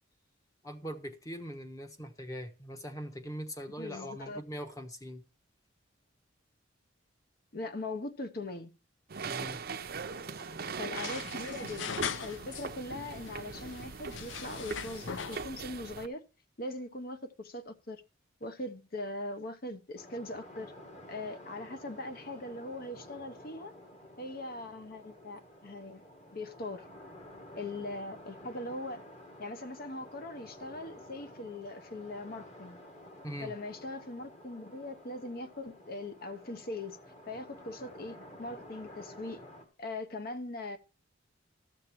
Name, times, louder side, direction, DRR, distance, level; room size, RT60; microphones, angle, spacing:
voice 1, 0.6-5.2 9.2-9.6 33.2-33.5, equal, 20° left, 1.1 m, -41 dB
voice 2, 3.8-4.4 7.5-8.7 10.8-16.2 16.6-18.0 18.4-20.7 21.1-23.7 24.2-26.0 26.3-26.9 27.6-29.0 29.4-32.8 33.4-37.0 37.3-39.4 39.8-40.8, left 2 dB, 50° left, 0.9 m, -41 dB
sound 1, 9.1-16.1, right 5 dB, 50° right, 0.6 m, -40 dB
Cocktail making, 9.8-12.7 13.0-15.6, left 7 dB, 70° left, 0.5 m, -41 dB
sound 2, 20.0-39.6, left 1 dB, 35° left, 1.9 m, -51 dB
13.0 x 6.7 x 4.4 m
head